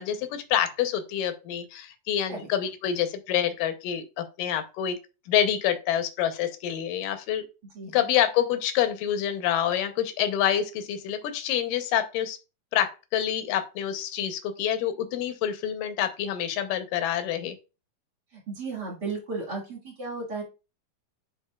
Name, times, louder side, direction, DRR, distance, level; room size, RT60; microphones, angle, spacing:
voice 1, 0.0-5.0 5.3-7.4 7.9-12.4 12.7-17.6, left 10 dB, 75° left, 9 dB, 2.3 m, -27 dB
voice 2, 7.7-8.1 18.3-20.4, right 3 dB, 40° right, -3 dB, 1.6 m, -34 dB
10.5 x 4.0 x 2.3 m, 0.30 s
omnidirectional pair, 4.2 m